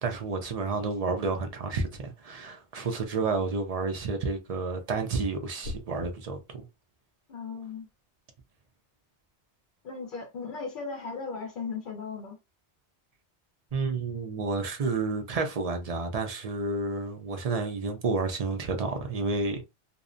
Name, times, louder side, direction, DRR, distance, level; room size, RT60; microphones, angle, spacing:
voice 1, 0.0-6.4 13.7-19.6, right 4 dB, 50° right, 0.4 m, -30 dB
sound 1, 5.6-6.1, left 2 dB, 90° left, 0.9 m, -38 dB
voice 2, 7.3-7.9 9.8-12.4, left 5 dB, 55° left, 0.7 m, -37 dB
2.6 x 2.0 x 2.5 m
omnidirectional pair, 1.2 m